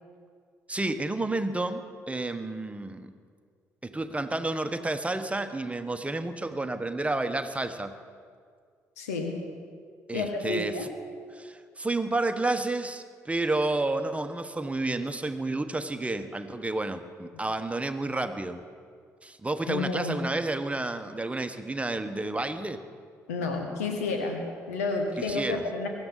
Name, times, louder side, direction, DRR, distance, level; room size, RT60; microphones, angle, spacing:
voice 1, 0.7-3.1 3.8-7.9 10.1-10.9 11.3-18.6 19.2-22.8 25.2-25.6, right 2 dB, 15° right, 8 dB, 1.2 m, -30 dB
voice 2, 9.0-9.4 10.1-10.9 19.6-20.2 23.3-25.9, left 3 dB, 85° left, 4 dB, 1.7 m, -30 dB
23.0 x 12.5 x 4.0 m, 2.1 s
hypercardioid pair, 45°, 8 cm